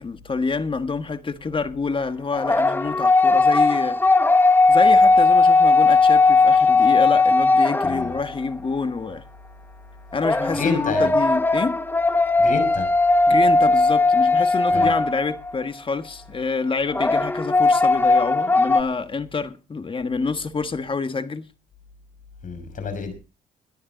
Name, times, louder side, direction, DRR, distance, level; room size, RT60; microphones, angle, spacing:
voice 1, 0.0-4.0 4.7-9.2 10.1-11.8 13.3-21.5, left 4 dB, 30° left, 1.5 m, -27 dB
sound 1, 2.3-8.4 10.2-15.5 16.9-18.8, left 3 dB, 10° left, 0.7 m, -18 dB
voice 2, 10.5-11.1 12.4-12.9 14.7-14.9 22.4-23.1, left 5 dB, 55° left, 5.7 m, -28 dB
18.0 x 12.0 x 3.9 m
cardioid pair, 95°, 17 cm